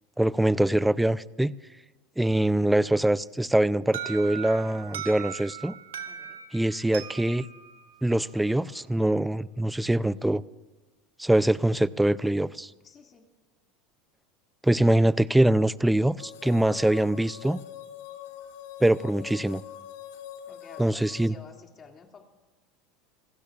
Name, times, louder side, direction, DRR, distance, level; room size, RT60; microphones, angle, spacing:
voice 1, 0.2-1.5 2.2-5.7 6.5-7.5 8.0-10.4 11.2-12.7 14.6-17.6 18.8-19.6 20.8-21.3, right 1 dB, 5° right, 18 dB, 0.4 m, -23 dB
Alarm, 3.9-8.7, right 10 dB, 85° right, 1.4 m, -40 dB
voice 2, 6.1-6.4 12.8-13.3 20.5-22.2, left 5 dB, 35° left, 3 dB, 2.3 m, -51 dB
sound 1, 16.2-21.3, left 11 dB, 75° left, 1.5 m, -43 dB
27.5 x 16.5 x 2.4 m, 1.2 s
hypercardioid pair, 95°, 0 cm